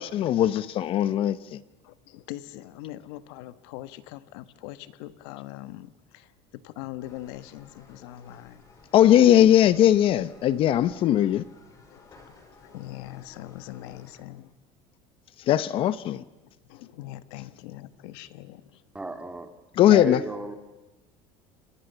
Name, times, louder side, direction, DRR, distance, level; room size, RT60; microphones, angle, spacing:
voice 1, 0.0-1.6 8.9-11.4 15.5-16.2 19.7-20.2, left 11 dB, 45° left, 16 dB, 0.8 m, -20 dB
voice 2, 1.8-8.6 11.9-14.5 16.6-18.8, left 15 dB, 85° left, 14 dB, 1.5 m, -42 dB
sound 1, 7.0-14.2, left 3 dB, 25° left, 5.7 m, -55 dB
voice 3, 18.9-19.5 19.9-20.6, right 2 dB, 10° right, 8 dB, 2.2 m, -34 dB
29.0 x 26.5 x 6.9 m, 1.1 s
cardioid pair, 150°, 13 cm